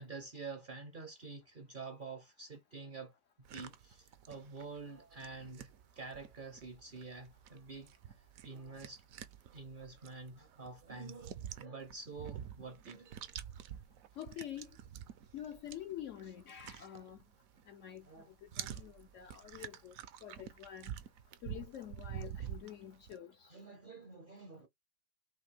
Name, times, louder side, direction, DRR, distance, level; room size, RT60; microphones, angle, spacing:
voice 1, 0.0-3.1 3.5-7.9 8.4-9.0 9.5-13.3 18.1-18.3 18.7-18.8 23.5-24.7, right 4 dB, 45° right, 0.7 m, -48 dB
sound 1, 3.4-17.7 18.0-23.2, right 10 dB, 70° right, 1.0 m, -49 dB
voice 2, 14.2-14.7 15.3-17.2 17.7-20.0 20.2-21.0 21.4-23.5, left 10 dB, 65° left, 0.9 m, -47 dB
5.6 x 2.6 x 3.3 m
omnidirectional pair, 1.6 m